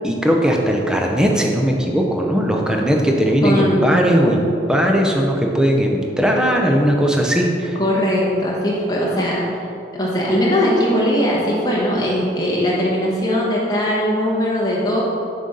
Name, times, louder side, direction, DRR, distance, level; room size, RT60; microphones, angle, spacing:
voice 1, 0.0-7.8, equal, 5° right, 0 dB, 0.5 m, -18 dB
voice 2, 3.4-4.0 7.8-9.4 9.9-15.0, equal, 20° left, -5 dB, 1.1 m, -19 dB
6.6 x 3.9 x 5.2 m, 2.8 s
head